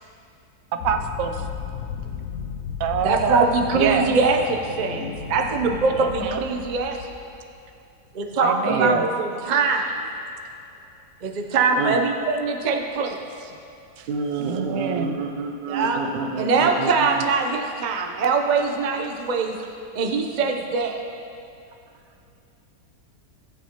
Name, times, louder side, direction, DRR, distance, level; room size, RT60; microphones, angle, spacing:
sound 1, 0.8-7.6, left 6 dB, 70° left, 1.0 m, -34 dB
voice 1, 0.8-1.4 2.8-3.5 3.7-4.1 6.0-6.4 8.4-9.1 14.4-15.2, right 7 dB, 60° right, 6 dB, 0.9 m, -25 dB
voice 2, 3.0-7.0 8.1-10.1 11.2-13.5 14.0-14.1 15.7-16.0 16.4-19.6 19.9-21.0, right 4 dB, 40° right, 3 dB, 0.6 m, -23 dB
voice 3, 8.7-9.0 11.8-11.9 14.1-16.9, right 4 dB, 80° right, 5 dB, 1.4 m, -27 dB
20.0 x 6.9 x 3.0 m, 2.6 s
omnidirectional pair, 1.9 m